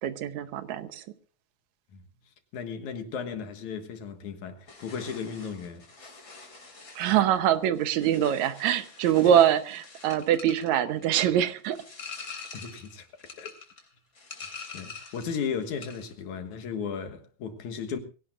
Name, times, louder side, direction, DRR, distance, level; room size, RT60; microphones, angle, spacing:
voice 1, 0.0-1.0 7.0-11.8, right 10 dB, 75° right, 2.2 m, -24 dB
voice 2, 2.5-6.2 9.2-9.3 12.5-13.1 13.4-13.5 14.7-18.0, left 6 dB, 75° left, 2.9 m, -35 dB
sound 1, 4.7-15.4 15.6-16.1, left 5 dB, 30° left, 3.6 m, -45 dB
22.0 x 17.0 x 2.5 m
omnidirectional pair, 3.4 m